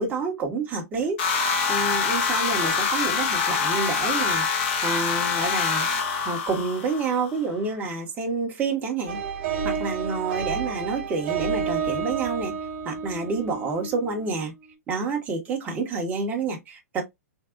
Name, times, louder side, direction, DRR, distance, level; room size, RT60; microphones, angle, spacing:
voice 1, 0.0-5.9 6.2-9.2 9.6-12.5 12.8-14.5 14.9-17.0, right 4 dB, 20° right, 1.0 m, -28 dB
sound 1, 1.2-7.3, left 5 dB, 45° left, 0.9 m, -25 dB
sound 2, 9.1-14.5, right 6 dB, 40° right, 1.3 m, -30 dB
3.6 x 2.6 x 2.4 m
figure-of-eight pair, 115°, 8 cm